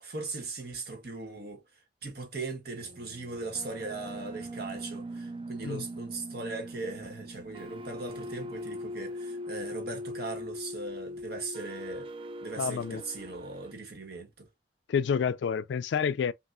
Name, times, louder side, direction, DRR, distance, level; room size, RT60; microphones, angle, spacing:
voice 1, 0.0-1.6 2.0-12.1 12.4-14.5, right 3 dB, 55° right, 1.3 m, -39 dB
sound 1, 2.8-13.7, equal, 30° right, 0.3 m, -41 dB
voice 2, 12.6-13.0 14.9-16.3, left 6 dB, 70° left, 0.3 m, -29 dB
5.7 x 2.4 x 2.5 m
head